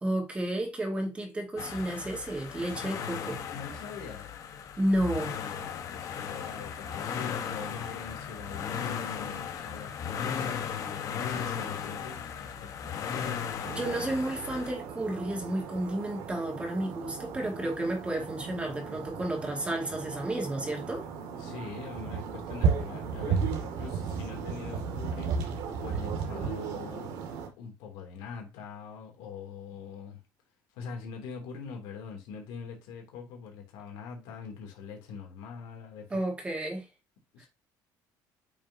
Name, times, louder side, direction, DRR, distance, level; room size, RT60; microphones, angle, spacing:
voice 1, 0.0-3.4 4.8-5.4 13.7-21.0 36.1-36.8 37.4-37.5, right 1 dB, 15° right, 2.3 m, -32 dB
sound 1, 1.6-14.7, left 7 dB, 45° left, 1.3 m, -36 dB
voice 2, 3.5-4.4 5.5-13.2 21.3-27.2 27.6-30.2 30.7-36.2 37.3-37.5, left 6 dB, 90° left, 3.0 m, -43 dB
sound 2, 13.6-27.5, right 6 dB, 85° right, 2.5 m, -34 dB
8.6 x 6.0 x 2.9 m
cardioid pair, 140°, 8 cm